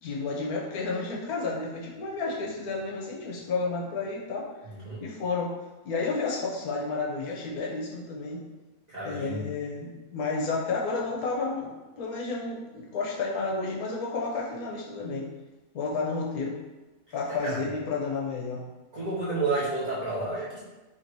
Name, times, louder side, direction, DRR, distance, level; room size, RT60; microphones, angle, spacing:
voice 1, 0.0-4.5 5.0-5.5 5.8-8.4 9.0-15.3 15.7-16.6 17.1-18.6, left 3 dB, 85° left, -3 dB, 1.2 m, -31 dB
voice 2, 4.7-5.0 8.9-9.5 17.4-17.6 18.9-20.6, right 3 dB, 35° right, -10 dB, 0.9 m, -30 dB
3.2 x 2.6 x 4.5 m, 1.1 s
omnidirectional pair, 1.6 m